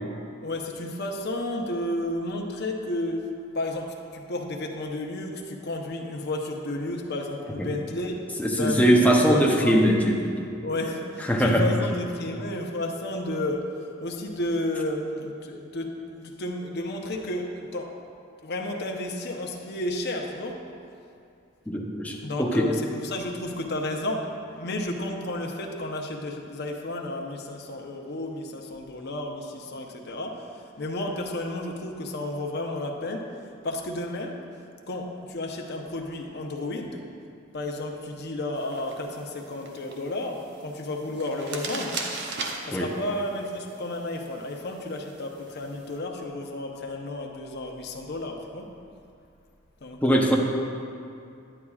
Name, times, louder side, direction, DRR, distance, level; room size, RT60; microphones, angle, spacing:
voice 1, 0.4-3.3 3.5-8.2 8.5-9.8 10.6-18.0 18.4-20.7 22.2-22.8 23.0-33.4 33.6-34.4 34.9-37.0 37.5-42.0 42.7-48.7 49.8-50.4, left 1 dB, 55° left, 2 dB, 0.8 m, -32 dB
voice 2, 8.4-10.5 11.3-11.7 21.7-22.7 42.7-42.9 50.0-50.4, equal, 10° left, -1 dB, 0.7 m, -21 dB
sound 1, 38.6-46.0, right 3 dB, 60° right, 0.8 m, -40 dB
9.9 x 9.7 x 2.4 m, 2.5 s
head